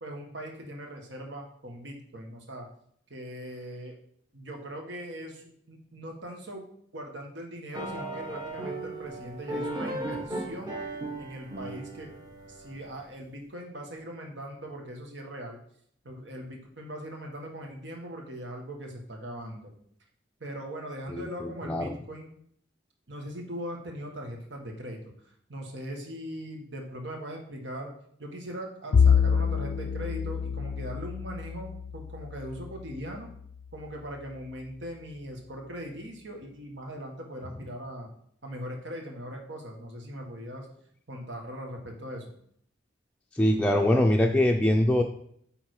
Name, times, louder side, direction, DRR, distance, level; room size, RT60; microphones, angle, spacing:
voice 1, 0.0-2.7 3.1-4.0 4.3-6.6 6.9-10.8 11.2-12.1 12.5-15.6 16.0-19.7 20.4-22.3 23.1-25.1 25.5-27.9 28.2-33.3 33.7-38.1 38.4-40.7 41.1-42.3, equal, 80° right, 2 dB, 1.6 m, -40 dB
sound 1, 7.7-13.0, right 2 dB, 20° right, 1.3 m, -36 dB
voice 2, 21.1-22.0 43.3-45.0, left 1 dB, 5° left, 1 dB, 0.4 m, -23 dB
Bowed string instrument, 28.9-33.5, left 6 dB, 80° left, 0.4 m, -27 dB
9.0 x 3.7 x 4.8 m, 0.66 s
head